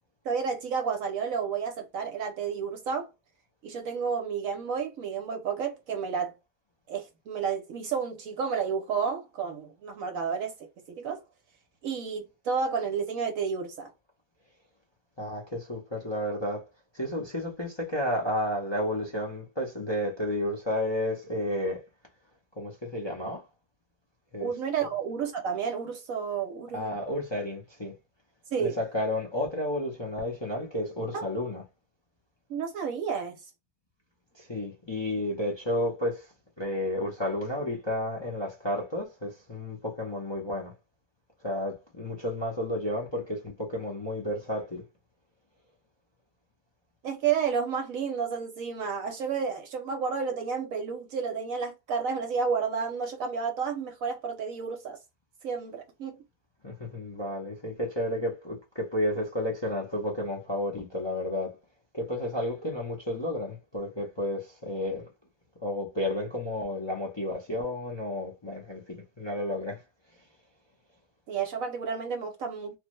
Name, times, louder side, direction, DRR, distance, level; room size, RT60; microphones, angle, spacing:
voice 1, 0.2-3.1 3.6-6.3 6.9-10.5 10.9-11.2 11.8-13.9 24.4-26.9 28.5-28.8 31.1-31.2 32.5-33.4 47.0-55.0 55.4-56.2 71.3-72.8, right 6 dB, 70° right, 0.9 m, -31 dB
voice 2, 15.2-16.7 16.9-21.8 22.6-23.4 24.3-24.5 26.7-27.9 28.6-31.6 34.3-36.3 36.6-40.7 41.4-44.8 56.6-61.5 61.9-65.0 65.6-69.8, left 1 dB, 40° left, 0.4 m, -32 dB
3.2 x 2.1 x 3.0 m
omnidirectional pair, 1.6 m